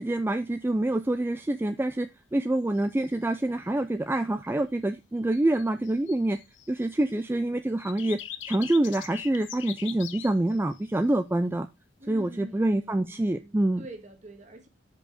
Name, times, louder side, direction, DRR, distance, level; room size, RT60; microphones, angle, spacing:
voice 1, 0.0-6.4 6.7-8.2 8.5-11.7 12.1-13.9, right 1 dB, 10° right, 0.3 m, -26 dB
sound 1, 2.8-3.2 5.3-7.1 7.8-10.9, left 11 dB, 80° left, 0.7 m, -42 dB
voice 2, 12.0-14.7, right 1 dB, 40° right, 1.5 m, -46 dB
6.5 x 5.3 x 4.8 m
head